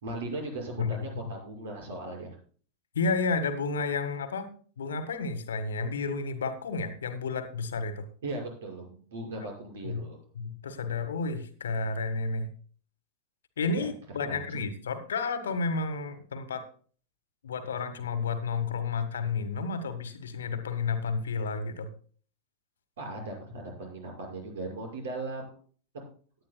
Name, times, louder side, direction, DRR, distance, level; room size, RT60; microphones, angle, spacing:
voice 1, 0.0-2.4 8.2-10.2 13.8-13.9 14.2-14.6 23.0-25.6 25.9-26.1, right 2 dB, 60° right, 1 dB, 6.0 m, -38 dB
voice 2, 3.0-4.5 4.8-8.1 9.8-10.0 10.4-12.5 13.6-16.7 17.4-21.9, left 4 dB, 65° left, 10 dB, 1.7 m, -31 dB
18.0 x 11.5 x 2.3 m, 0.43 s
figure-of-eight pair, 90°, 0 cm